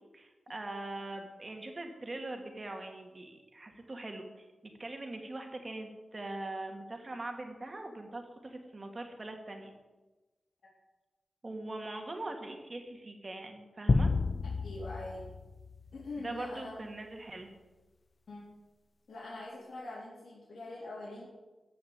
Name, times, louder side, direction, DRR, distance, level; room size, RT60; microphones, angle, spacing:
voice 1, 0.1-9.7 11.4-14.1 16.2-17.5, right 2 dB, 40° right, 4 dB, 2.4 m, -42 dB
sound 1, 13.9-16.5, left 3 dB, 45° left, 0.6 m, -31 dB
voice 2, 14.6-15.3 15.9-16.9 18.3-18.5 19.1-21.3, left 2 dB, 80° left, -7 dB, 3.7 m, -43 dB
14.0 x 6.0 x 8.9 m, 1.2 s
wide cardioid pair, 75°, 0 cm